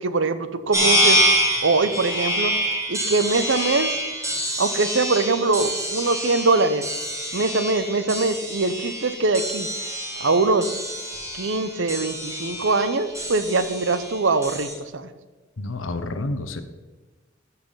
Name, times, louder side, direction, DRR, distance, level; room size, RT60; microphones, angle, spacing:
voice 1, 0.0-1.3 1.6-2.5 2.9-4.0 4.6-6.8 7.3-9.7 10.2-10.7 11.3-14.7 14.9-15.1, right 3 dB, 70° right, 11 dB, 0.8 m, -22 dB
sound 1, 0.7-14.7, equal, 15° right, 2.3 m, -26 dB
voice 2, 15.6-16.6, left 2 dB, 85° left, 8 dB, 0.9 m, -29 dB
13.0 x 5.8 x 5.7 m, 1.3 s
head